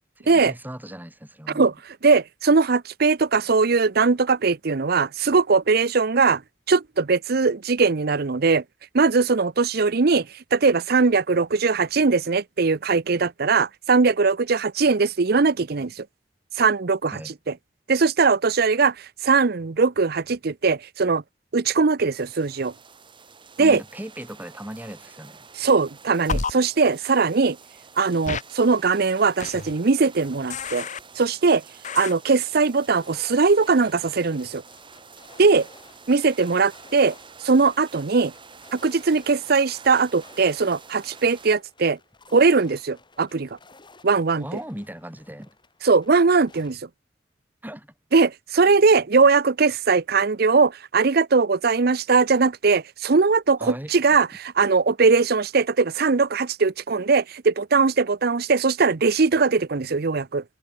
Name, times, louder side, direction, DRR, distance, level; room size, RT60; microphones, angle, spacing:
voice 1, 0.2-1.7 17.1-17.3 23.6-25.5 44.4-45.6 47.6-47.9 48.7-48.8 53.6-53.9, equal, 10° right, 5.0 m, -37 dB
voice 2, 2.0-6.4 6.7-8.6 8.9-16.0 16.6-17.2 17.9-21.2 21.5-22.7 23.6-23.8 25.6-27.6 28.0-30.9 31.2-31.6 31.9-34.6 35.4-35.7 36.1-37.1 37.4-38.3 38.7-42.0 42.3-43.5 44.0-44.4 45.8-46.8 48.1-60.4, right 4 dB, 60° right, 0.7 m, -20 dB
sound 1, 22.1-41.6, right 5 dB, 30° right, 1.9 m, -48 dB
sound 2, 26.3-26.5 28.3-28.4 29.4-29.7 30.5-31.0 31.8-32.1, left 4 dB, 45° left, 1.1 m, -29 dB
sound 3, 33.0-46.7, left 3 dB, 25° left, 7.5 m, -54 dB
head